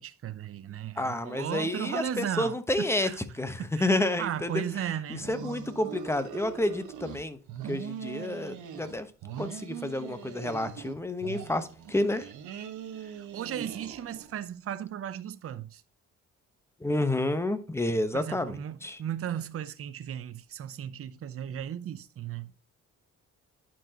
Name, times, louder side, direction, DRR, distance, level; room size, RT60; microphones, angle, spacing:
voice 1, 0.0-3.2 3.8-5.3 13.1-15.8 18.1-22.5, right 10 dB, 50° right, 0.7 m, -36 dB
voice 2, 1.0-3.1 3.4-4.6 5.1-7.4 7.7-9.1 9.4-12.3 16.8-19.0, left 1 dB, 10° left, 1.0 m, -30 dB
sound 1, 5.1-7.2 7.5-9.0 9.2-10.9 11.2-14.4, right 8 dB, 80° right, 1.2 m, -41 dB
11.0 x 4.6 x 2.9 m
cardioid pair, 90°, 30 cm